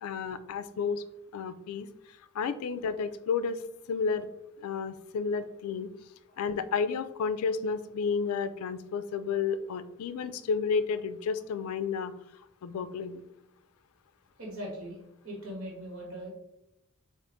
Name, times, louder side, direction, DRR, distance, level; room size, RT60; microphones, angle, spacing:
voice 1, 0.0-1.0 1.3-1.9 2.3-3.6 3.9-4.3 4.6-5.9 6.4-12.1 12.6-13.2, left 5 dB, 85° left, 13 dB, 0.3 m, -31 dB
voice 2, 14.4-15.0 15.2-16.3, equal, 80° right, -3 dB, 1.4 m, -40 dB
3.8 x 2.5 x 3.5 m, 0.83 s
head